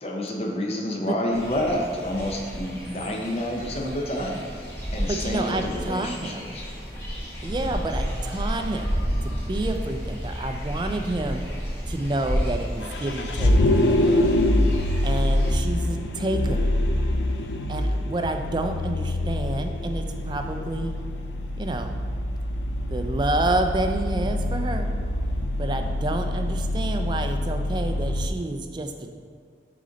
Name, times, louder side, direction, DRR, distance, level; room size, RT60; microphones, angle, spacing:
voice 1, 0.0-6.6, left 1 dB, 35° left, 0 dB, 0.7 m, -29 dB
sound 1, 1.3-15.6, equal, 15° left, 1.2 m, -31 dB
voice 2, 5.0-6.6 7.4-8.9 9.2-11.4 11.9-14.5 15.0-16.7 17.7-21.0 21.6-22.0 22.9-24.9 25.6-29.1, right 2 dB, 25° right, 5 dB, 0.3 m, -29 dB
Vehicle, 12.8-28.3, left 1 dB, 80° left, 0.5 m, -25 dB
6.3 x 3.9 x 3.9 m, 2.2 s
head